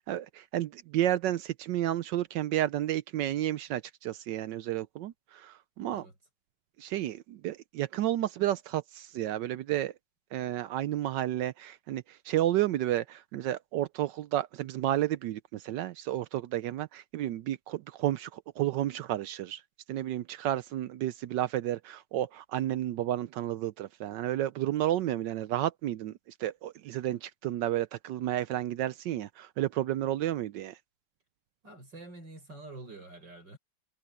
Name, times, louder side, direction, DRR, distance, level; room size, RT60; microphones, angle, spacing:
voice 1, 0.0-6.0 6.8-9.9 10.3-19.6 19.9-26.1 26.4-30.8, right 13 dB, 75° right, 1.0 m, -31 dB
voice 2, 31.6-33.6, right 2 dB, 55° right, 7.4 m, -47 dB
omnidirectional pair, 2.4 m